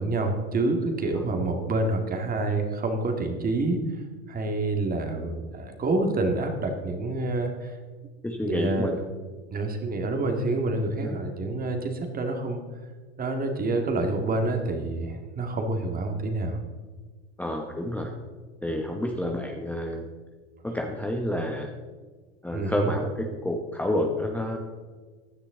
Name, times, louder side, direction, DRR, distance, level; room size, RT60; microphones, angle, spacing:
voice 1, 0.0-3.8 4.3-7.8 8.4-8.9 9.5-12.6 13.2-16.6 22.5-22.9, right 2 dB, 25° right, 4 dB, 2.2 m, -27 dB
voice 2, 8.2-9.0 11.0-11.2 17.4-18.1 18.6-20.1 20.6-21.7 22.4-24.6, left 1 dB, 5° left, 2 dB, 1.1 m, -29 dB
15.5 x 10.0 x 3.9 m, 1.4 s
hypercardioid pair, 100°, 32 cm